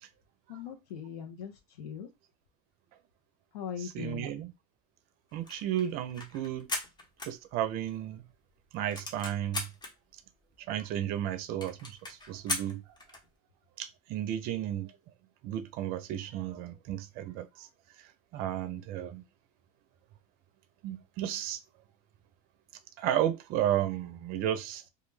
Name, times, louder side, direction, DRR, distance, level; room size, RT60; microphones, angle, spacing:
voice 1, 0.5-2.1 3.5-4.3, left 8 dB, 85° left, 0.6 m, -40 dB
voice 2, 3.8-4.5 5.3-6.7 7.3-8.2 8.7-9.7 10.7-12.8 13.8-14.9 15.4-17.7 18.3-19.2 20.8-21.6 23.0-24.9, right 11 dB, 50° right, 0.5 m, -33 dB
sound 1, 5.3-8.0 8.3-8.4 8.7-9.9 10.5-10.6 10.8-10.9 11.2-11.3 11.6-13.3, left 2 dB, 20° left, 0.9 m, -38 dB
2.3 x 2.1 x 3.1 m
supercardioid pair, 110°, 20 cm